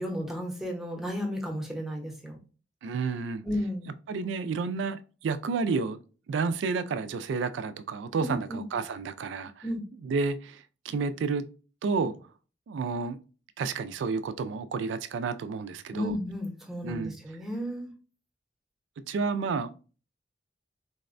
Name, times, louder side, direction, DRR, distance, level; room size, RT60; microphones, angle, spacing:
voice 1, 0.0-2.4 3.4-3.9 8.2-8.6 9.6-9.8 15.9-17.9, equal, ahead, 0.6 m, -33 dB
voice 2, 2.8-3.5 4.1-6.0 6.3-9.7 9.9-11.4 11.8-12.2 12.7-13.2 13.6-16.2 16.8-17.1 19.1-19.7, right 4 dB, 75° right, 0.3 m, -30 dB
4.0 x 2.1 x 2.4 m
head